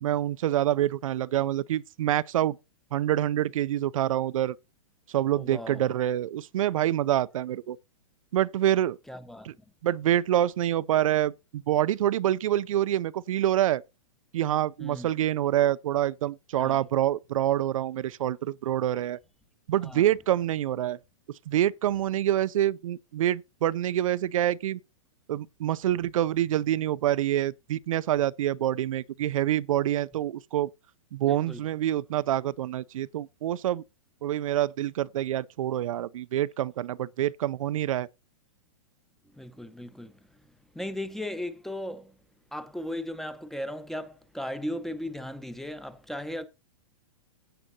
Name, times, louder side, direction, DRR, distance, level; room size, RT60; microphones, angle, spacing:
voice 1, 0.0-2.6 2.9-4.6 5.1-7.8 8.3-9.0 9.4-9.5 9.8-13.8 14.3-19.2 19.7-21.0 21.3-24.8 25.3-30.7 31.1-33.8 34.2-38.1, right 12 dB, 70° right, 0.5 m, -26 dB
voice 2, 5.4-5.9 9.1-9.5 14.8-15.1 16.6-16.8 19.8-20.1 31.3-31.6 39.2-40.4 40.7-42.2 42.5-46.5, left 1 dB, ahead, 0.8 m, -37 dB
15.5 x 8.8 x 2.8 m
hypercardioid pair, 145°, 18 cm